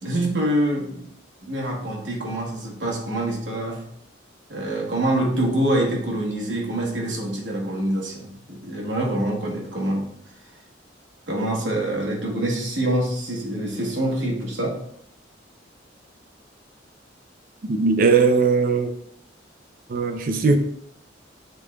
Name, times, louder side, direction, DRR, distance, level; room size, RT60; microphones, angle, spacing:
voice 1, 0.0-1.1 1.4-3.8 4.5-10.1 11.3-14.8, right 1 dB, 75° right, 1.1 m, -25 dB
voice 2, 17.7-18.9 19.9-20.6, right 4 dB, 45° right, 0.5 m, -19 dB
6.7 x 3.1 x 2.3 m
head